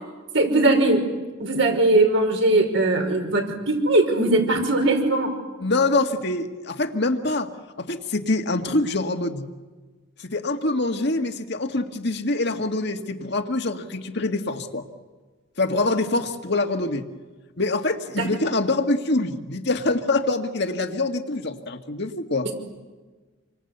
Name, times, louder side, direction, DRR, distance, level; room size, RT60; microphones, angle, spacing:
voice 1, 0.3-1.0 1.4-5.3 18.2-18.3, right 2 dB, 75° right, 3 dB, 5.7 m, -20 dB
voice 2, 5.6-7.5 7.8-9.5 10.2-14.9 15.6-17.1 17.6-22.5, left 2 dB, 60° left, 5 dB, 2.0 m, -25 dB
28.0 x 25.0 x 8.2 m, 1.3 s
head